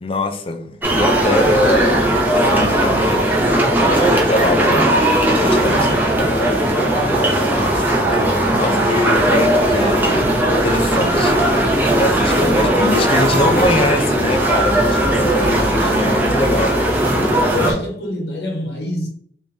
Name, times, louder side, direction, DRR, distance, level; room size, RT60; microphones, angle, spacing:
voice 1, 0.0-3.3 3.8-5.0 5.4-6.5 7.5-11.5 12.0-16.8, left 2 dB, 30° left, 0.4 m, -23 dB
sound 1, 0.8-17.7, right 1 dB, 10° right, 0.7 m, -17 dB
voice 2, 7.6-8.0 8.8-9.1 12.3-13.7 15.6-16.0 17.5-19.1, left 1 dB, 75° left, 0.9 m, -28 dB
3.6 x 2.6 x 3.4 m
head